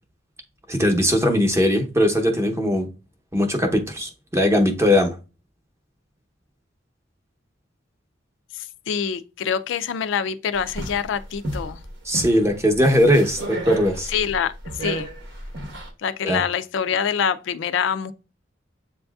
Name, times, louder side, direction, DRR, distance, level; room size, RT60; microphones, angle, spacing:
voice 1, 0.7-2.9 3.3-5.2 12.0-14.1 16.2-16.4, equal, 15° right, 0.7 m, -19 dB
voice 2, 8.5-11.8 14.1-14.5 14.8-15.1 16.0-18.1, left 7 dB, 75° left, 0.4 m, -25 dB
sound 1, 10.5-15.9, right 1 dB, 65° right, 0.9 m, -33 dB
7.7 x 2.6 x 2.3 m
head